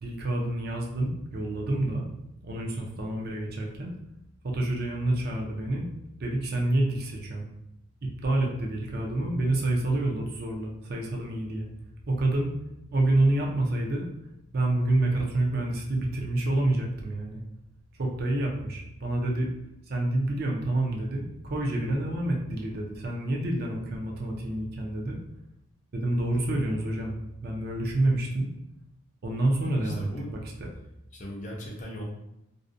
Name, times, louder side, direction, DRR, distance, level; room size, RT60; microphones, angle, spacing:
voice 1, 0.0-2.1 2.4-3.9 4.4-5.9 6.2-7.5 8.0-11.7 12.1-12.5 12.9-14.1 14.5-17.4 18.0-19.5 19.9-25.2 25.9-27.1 27.4-28.5 29.2-30.1 30.6-30.7, right 2 dB, 45° right, 0 dB, 0.4 m, -28 dB
voice 2, 29.8-30.4 31.1-32.0, left 1 dB, 35° left, -1 dB, 0.4 m, -38 dB
2.5 x 2.1 x 2.5 m, 0.86 s
head